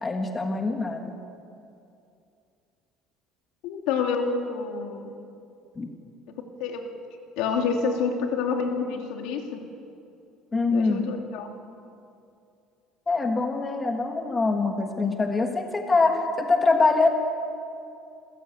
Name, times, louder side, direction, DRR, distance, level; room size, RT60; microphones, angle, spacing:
voice 1, 0.0-1.2 5.8-5.9 10.5-11.1 13.1-17.1, left 3 dB, 15° left, 4 dB, 1.5 m, -24 dB
voice 2, 3.6-5.1 6.3-7.0 7.4-9.7 10.7-11.5, left 5 dB, 75° left, 3 dB, 2.8 m, -28 dB
27.5 x 15.5 x 8.6 m, 2.5 s
cardioid pair, 170°, 0 cm